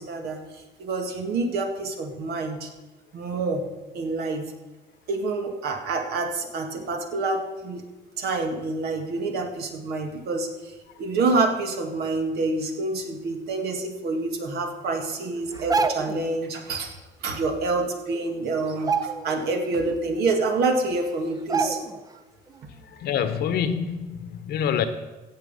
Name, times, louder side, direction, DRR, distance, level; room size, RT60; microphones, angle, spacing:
voice 1, 0.0-2.7 3.1-3.6 3.9-4.5 5.1-7.8 8.2-16.9 17.2-21.8, right 3 dB, 70° right, 4 dB, 1.9 m, -27 dB
sound 1, 15.5-16.3 17.7-17.8 18.1-18.4 18.7-19.6 20.0-20.1 20.8-20.9 21.5-22.1 22.5-22.6, right 5 dB, 20° right, 0.7 m, -27 dB
voice 2, 23.0-24.8, left 8 dB, 70° left, 10 dB, 1.1 m, -26 dB
16.5 x 7.2 x 5.5 m, 1.2 s
cardioid pair, 110°, 17 cm